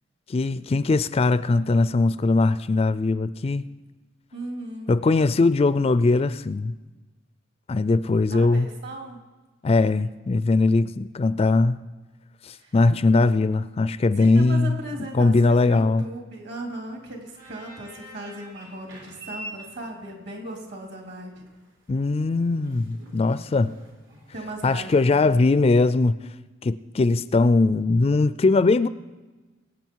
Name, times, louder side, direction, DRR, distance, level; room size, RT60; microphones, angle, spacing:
voice 1, 0.3-3.7 4.9-6.7 7.7-8.7 9.6-11.8 12.4-14.8 15.1-16.0 21.9-23.7 24.6-26.1 26.6-28.9, left 3 dB, 30° left, 0.3 m, -20 dB
voice 2, 4.3-4.9 8.2-9.2 12.6-12.7 14.2-21.4 24.3-25.5, right 1 dB, 60° right, 3.1 m, -37 dB
sound 1, 16.8-25.1, right 1 dB, 80° right, 4.5 m, -46 dB
23.0 x 8.7 x 4.6 m
head